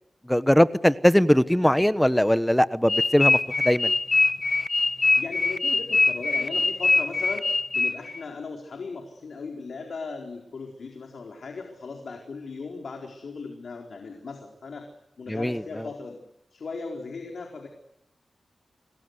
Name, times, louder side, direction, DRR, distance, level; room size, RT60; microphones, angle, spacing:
voice 1, 0.2-3.9 15.3-15.9, equal, 5° left, 13 dB, 1.2 m, -21 dB
sound 1, 2.9-8.2, left 3 dB, 45° left, 1.1 m, -23 dB
voice 2, 5.2-7.5 7.7-14.9 15.2-16.2 16.5-17.7, left 4 dB, 75° left, 2 dB, 4.4 m, -37 dB
29.5 x 21.5 x 8.2 m, 0.82 s
cardioid pair, 70°, 0 cm